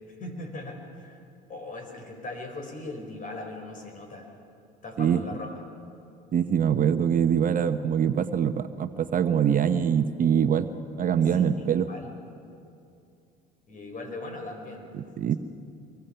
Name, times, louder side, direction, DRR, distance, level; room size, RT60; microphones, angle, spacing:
voice 1, 0.2-1.2 1.5-4.3 4.8-5.6 11.3-11.5 11.9-12.1 13.7-14.9, left 2 dB, 40° left, 4 dB, 5.1 m, -39 dB
voice 2, 6.3-10.7 11.0-11.9 14.9-15.4, right 8 dB, 40° right, 9 dB, 1.0 m, -24 dB
25.0 x 23.0 x 5.8 m, 2.6 s
hypercardioid pair, 75°, 21 cm